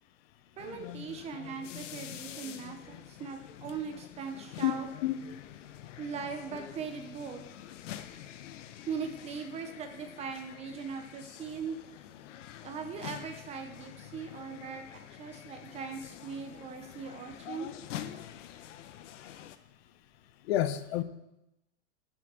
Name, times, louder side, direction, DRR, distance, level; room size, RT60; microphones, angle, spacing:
sound 1, 0.6-19.6, left 11 dB, 80° left, 0.9 m, -47 dB
voice 1, 0.6-4.9 6.0-7.5 8.9-11.8 12.6-17.7, right 6 dB, 15° right, 6 dB, 0.6 m, -40 dB
voice 2, 20.5-21.0, left 13 dB, 55° left, 11 dB, 0.9 m, -28 dB
7.7 x 7.4 x 6.7 m, 0.90 s
supercardioid pair, 160°, 37 cm